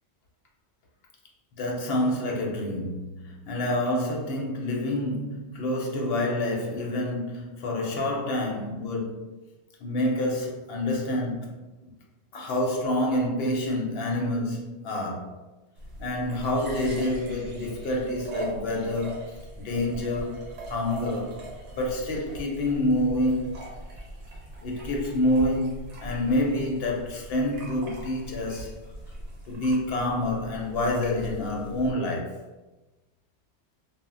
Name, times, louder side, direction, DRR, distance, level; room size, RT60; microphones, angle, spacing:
voice 1, 1.5-9.3 9.8-11.9 12.3-15.3 16.0-20.4 20.7-21.4 21.7-23.5 24.6-28.7 29.5-32.4, left 1 dB, 60° left, 0.7 m, -28 dB
sound 1, 15.8-31.9, right 1 dB, 75° right, 1.0 m, -41 dB
2.1 x 2.1 x 3.6 m
omnidirectional pair, 1.2 m